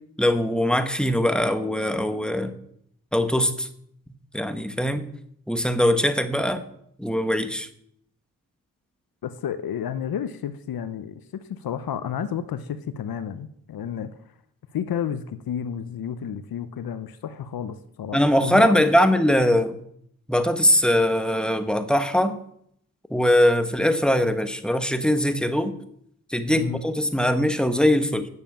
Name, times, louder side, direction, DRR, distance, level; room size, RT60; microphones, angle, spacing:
voice 1, 0.2-2.6 3.1-3.7 4.3-5.1 5.5-6.6 7.0-7.7 18.1-19.8 20.3-22.4 23.1-25.7 26.3-28.3, equal, ahead, 9 dB, 1.2 m, -21 dB
voice 2, 9.2-14.1 14.7-18.8 26.5-26.8, left 8 dB, 75° left, 12 dB, 0.8 m, -31 dB
9.7 x 7.1 x 7.0 m, 0.70 s
cardioid pair, 60°, 36 cm